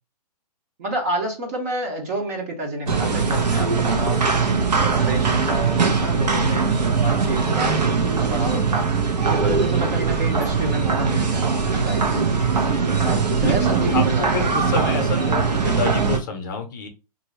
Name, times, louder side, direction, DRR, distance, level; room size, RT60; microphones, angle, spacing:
voice 1, 0.8-9.0 9.2-12.3 13.0-14.5, right 1 dB, 25° right, 0.6 m, -29 dB
sound 1, 2.8-5.2, right 3 dB, 60° right, 1.3 m, -37 dB
sound 2, 2.9-16.2, right 5 dB, 90° right, 0.9 m, -21 dB
voice 2, 12.6-13.0 13.4-16.9, left 4 dB, 30° left, 0.7 m, -29 dB
3.0 x 2.6 x 3.1 m
hypercardioid pair, 165°, 21 cm